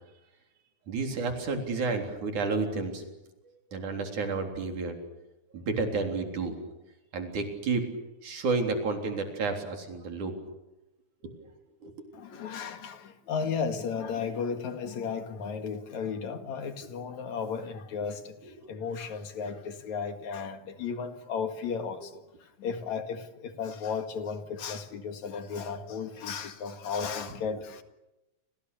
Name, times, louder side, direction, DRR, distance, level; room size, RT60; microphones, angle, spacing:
voice 1, 0.9-3.1 3.7-5.0 5.5-6.6 7.1-7.8 8.2-10.3 11.2-11.3 11.8-11.9 18.6-18.7, right 4 dB, 85° right, 5.1 m, -31 dB
voice 2, 12.1-27.8, left 6 dB, 70° left, 3.2 m, -34 dB
29.5 x 27.0 x 6.9 m
omnidirectional pair, 3.4 m